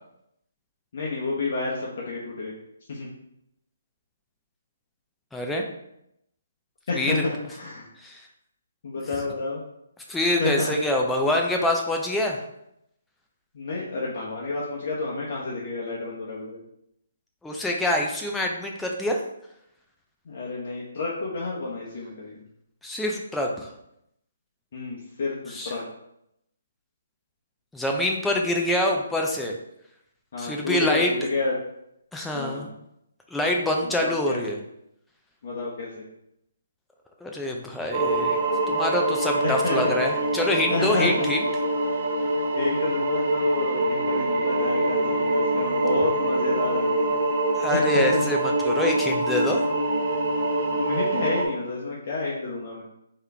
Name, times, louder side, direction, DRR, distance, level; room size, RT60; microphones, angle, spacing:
voice 1, 0.9-2.5 2.9-3.1 6.9-7.9 8.8-9.6 10.4-10.7 13.5-16.6 20.3-22.4 24.7-25.3 25.6-25.8 30.3-31.5 32.3-32.7 33.8-34.4 35.4-36.0 39.4-39.9 40.7-41.1 42.5-47.2 47.7-48.3 50.8-52.8, left 3 dB, 50° left, -4 dB, 1.0 m, -30 dB
voice 2, 5.3-5.6 6.9-7.2 8.0-8.2 10.1-12.4 17.4-19.2 22.8-23.7 25.5-25.7 27.7-29.5 30.4-31.1 32.1-32.7 33.3-34.6 37.2-38.4 38.7-41.4 47.6-49.6, left 1 dB, 5° left, 0 dB, 0.6 m, -25 dB
sound 1, 37.9-51.5, right 2 dB, 45° right, 0.8 m, -25 dB
4.5 x 3.2 x 3.4 m, 0.79 s
hypercardioid pair, 150°, 0 cm